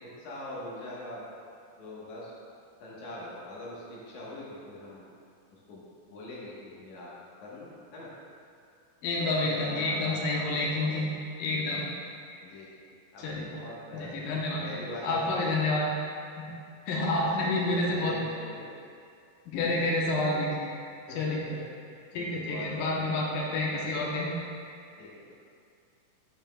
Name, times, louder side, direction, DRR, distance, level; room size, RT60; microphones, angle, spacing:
voice 1, 0.0-1.3 1.8-2.3 2.8-5.1 5.5-5.8 6.1-7.1 7.4-8.1 9.2-10.9 12.4-12.7 13.1-14.3 14.6-15.6 16.5-16.6 16.9-18.7 19.7-19.9 21.0-21.6 21.9-23.4 23.7-24.4 25.0-25.3, left 1 dB, 65° left, -6 dB, 2.5 m, -42 dB
voice 2, 9.0-11.1 11.4-11.8 13.2-13.5 13.9-14.7 15.0-15.9 16.9-18.2 19.5-20.7 21.2-21.5 22.1-24.3, left 2 dB, 80° left, -3 dB, 2.5 m, -29 dB
11.0 x 5.7 x 2.2 m, 2.4 s
omnidirectional pair, 3.9 m